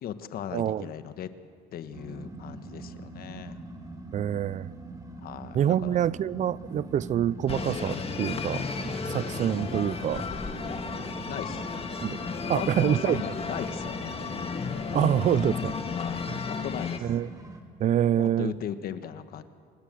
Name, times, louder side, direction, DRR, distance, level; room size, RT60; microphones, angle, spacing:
voice 1, 0.0-1.3 1.7-3.6 5.2-6.0 11.3-11.7 12.5-14.4 15.3-15.6 15.9-17.1 18.2-19.4, left 9 dB, 65° left, 1.4 m, -37 dB
voice 2, 0.5-0.9 4.1-4.7 5.5-8.7 9.0-10.2 12.0-12.2 12.5-13.2 14.9-15.7 16.3-16.4 17.0-17.3 17.8-18.6, right 10 dB, 45° right, 0.5 m, -26 dB
sound 1, 1.9-17.6, right 2 dB, 20° right, 3.0 m, -42 dB
sound 2, 7.5-17.0, left 5 dB, 35° left, 1.8 m, -34 dB
26.5 x 20.5 x 7.7 m
cardioid pair, 110°, 17 cm